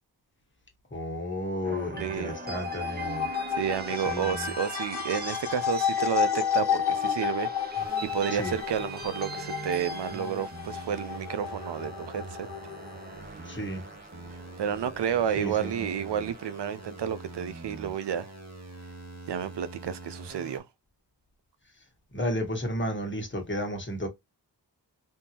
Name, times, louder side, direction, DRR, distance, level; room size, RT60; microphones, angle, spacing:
voice 1, 0.9-3.3 4.0-4.5 8.3-8.5 13.4-13.8 15.4-15.9 22.1-24.1, equal, 25° left, 1.2 m, -32 dB
sound 1, 1.6-17.8, right 3 dB, 25° right, 0.7 m, -42 dB
sound 2, 1.8-13.0, left 9 dB, 70° left, 0.6 m, -32 dB
voice 2, 2.0-2.4 3.6-12.5 14.6-18.3 19.3-20.6, right 8 dB, 75° right, 0.5 m, -31 dB
sound 3, 7.8-20.6, right 2 dB, 40° right, 1.1 m, -45 dB
3.6 x 2.8 x 2.8 m
wide cardioid pair, 85°, 42 cm